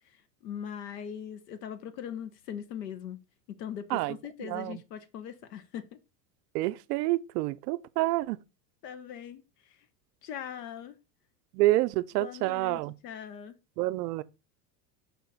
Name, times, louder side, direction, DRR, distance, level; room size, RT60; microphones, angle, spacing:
voice 1, 0.4-3.2 3.5-6.0 8.0-8.1 8.8-9.4 10.2-11.0 12.2-13.6, left 9 dB, 75° left, 1.3 m, -40 dB
voice 2, 3.9-4.8 6.5-8.4 11.5-12.9 13.8-14.2, right 18 dB, 70° right, 0.6 m, -28 dB
5.7 x 3.7 x 6.0 m
hypercardioid pair, 90°, 49 cm